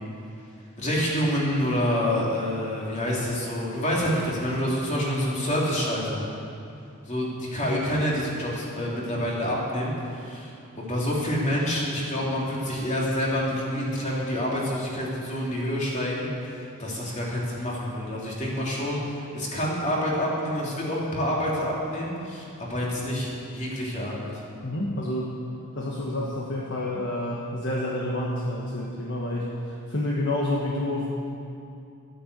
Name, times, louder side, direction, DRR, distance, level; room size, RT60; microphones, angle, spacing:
voice 1, 0.8-6.2 7.1-24.3, equal, 35° left, -4 dB, 3.3 m, -27 dB
voice 2, 24.6-25.4 25.7-31.1, left 1 dB, 55° left, -3 dB, 1.5 m, -29 dB
13.0 x 10.0 x 8.4 m, 2.6 s
head